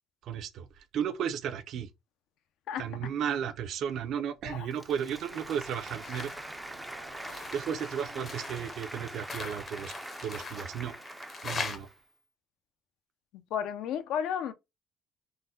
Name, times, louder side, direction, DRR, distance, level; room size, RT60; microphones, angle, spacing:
voice 1, 0.2-1.9 2.8-6.3 7.3-9.9 10.2-10.9 11.4-11.9, right 8 dB, 65° right, 0.5 m, -34 dB
Applause, 4.6-12.0, right 1 dB, 5° right, 0.3 m, -43 dB
sound 1, 5.1-9.0, right 4 dB, 80° right, 1.1 m, -55 dB
sound 2, 6.0-6.4 6.8-11.8, left 4 dB, 35° left, 0.6 m, -41 dB
voice 2, 13.5-14.5, left 8 dB, 75° left, 0.4 m, -32 dB
3.8 x 2.1 x 2.7 m
cardioid pair, 130°, 0 cm